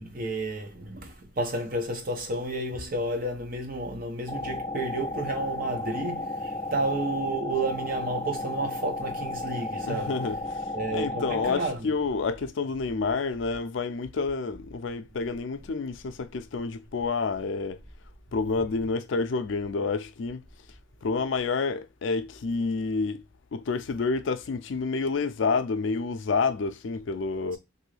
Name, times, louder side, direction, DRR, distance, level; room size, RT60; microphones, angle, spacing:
voice 1, 0.0-10.2 10.7-11.9, right 2 dB, 45° right, 0.9 m, -31 dB
sound 1, 4.3-11.5, left 2 dB, 15° left, 0.4 m, -34 dB
voice 2, 9.8-10.6 10.9-17.8 18.3-20.4 21.0-23.2 23.5-27.6, left 4 dB, 75° left, 0.4 m, -29 dB
3.0 x 2.6 x 3.1 m
head